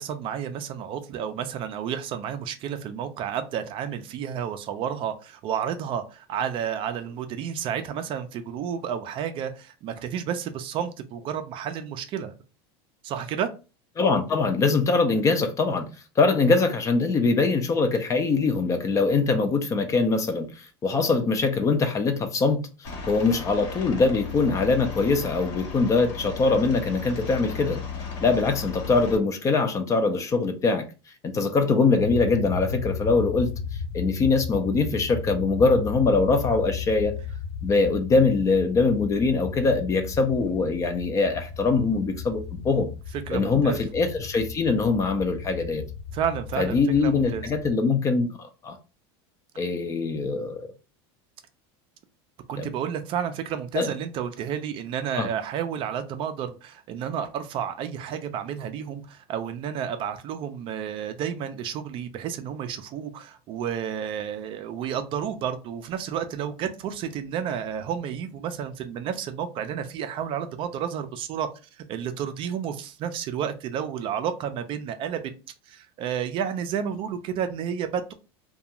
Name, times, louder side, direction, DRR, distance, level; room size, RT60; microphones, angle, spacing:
voice 1, 0.0-12.3 13.0-13.5 43.3-43.8 46.1-47.4 52.5-71.5 71.8-75.2 75.7-78.1, right 8 dB, 40° right, 0.4 m, -31 dB
voice 2, 14.0-15.9 16.2-27.8 28.2-30.9 31.2-33.5 33.9-37.2 37.6-42.9 43.3-45.8 46.6-48.8 49.6-50.7 52.6-52.7 53.7-53.9 55.2-55.3, left 4 dB, 25° left, 0.4 m, -23 dB
Aircraft, 22.8-29.2, left 5 dB, 80° left, 1.1 m, -35 dB
sound 1, 31.9-47.7, left 5 dB, 50° left, 1.1 m, -35 dB
2.4 x 2.3 x 2.8 m
supercardioid pair, 130°, 14 cm